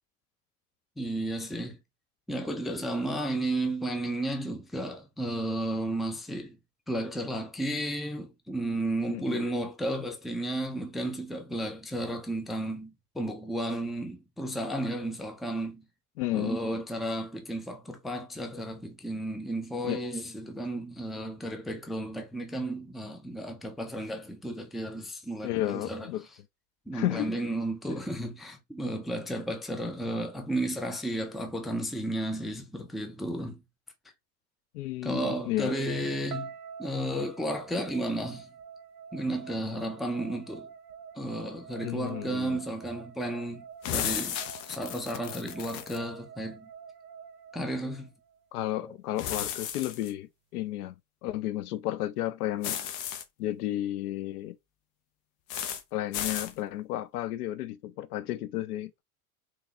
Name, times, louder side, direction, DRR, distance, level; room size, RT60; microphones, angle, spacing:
voice 1, 1.0-1.8 2.3-6.6 6.9-15.9 16.3-26.1 26.9-33.6 35.0-36.5 36.8-38.5 39.1-40.7 41.2-44.4 44.7-46.7 47.5-48.1 48.8-48.9, right 1 dB, ahead, 0.4 m, -33 dB
voice 2, 9.1-9.4 16.2-16.6 19.8-20.0 25.4-26.2 26.9-27.3 34.7-35.7 41.8-42.6 48.5-50.9 51.2-52.8 53.4-54.6 55.9-59.0, left 14 dB, 80° left, 0.6 m, -32 dB
sound 1, 36.3-48.4, right 6 dB, 45° right, 0.8 m, -47 dB
sound 2, 43.8-46.0 49.2-50.1 52.6-53.2 55.5-55.8 56.1-56.5, left 9 dB, 50° left, 0.8 m, -34 dB
3.5 x 3.1 x 2.8 m
hypercardioid pair, 110°, 44 cm